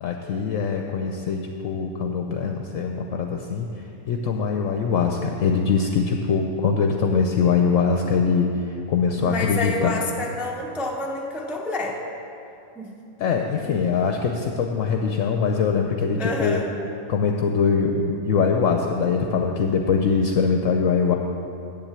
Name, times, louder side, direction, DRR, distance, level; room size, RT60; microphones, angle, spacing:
voice 1, 0.0-3.7 4.1-9.9 13.2-16.6 17.1-21.2, left 5 dB, 65° left, 3 dB, 1.0 m, -22 dB
voice 2, 9.2-12.0 12.8-12.9 16.2-16.7, left 2 dB, ahead, 0 dB, 0.6 m, -28 dB
7.8 x 7.4 x 8.1 m, 2.7 s
omnidirectional pair, 1.5 m